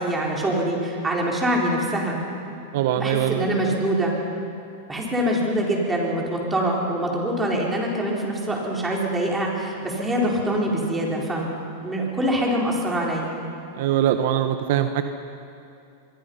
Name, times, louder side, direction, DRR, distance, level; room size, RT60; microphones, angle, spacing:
voice 1, 0.0-2.2 3.0-4.1 4.9-11.5 11.8-13.3, right 1 dB, 10° right, -2 dB, 4.6 m, -24 dB
voice 2, 2.7-3.5 13.8-15.0, right 11 dB, 65° right, 8 dB, 1.1 m, -22 dB
25.0 x 22.5 x 5.7 m, 2.6 s
supercardioid pair, 135°, 0 cm